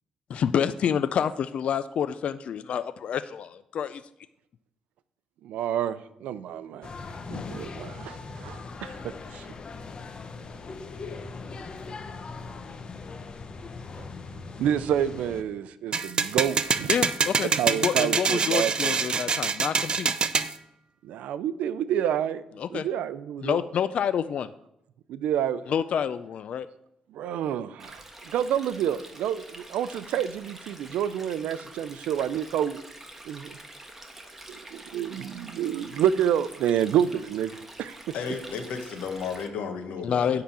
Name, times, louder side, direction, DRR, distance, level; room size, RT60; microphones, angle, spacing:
voice 1, 0.3-4.0 16.9-20.1 22.6-22.9 23.4-24.5 25.7-26.7 40.0-40.4, left 8 dB, 60° left, 13 dB, 0.3 m, -28 dB
voice 2, 5.4-6.9 7.3-9.5 14.6-16.9 17.4-19.0 19.4-19.5 21.0-22.4 22.7-23.6 25.1-25.7 27.1-32.8 33.2-33.6 34.5-37.5 37.8-38.1, right 9 dB, 90° right, 14 dB, 0.5 m, -28 dB
sound 1, 6.8-15.4, left 4 dB, 40° left, 0.8 m, -40 dB
sound 2, 15.9-20.5, right 5 dB, 40° right, 0.5 m, -25 dB
Stream, 27.8-39.5, right 1 dB, 15° right, 1.3 m, -46 dB
voice 3, 38.1-40.4, left 5 dB, 85° left, 5 dB, 1.3 m, -33 dB
10.0 x 3.9 x 7.2 m, 0.79 s
cardioid pair, 95°, 2 cm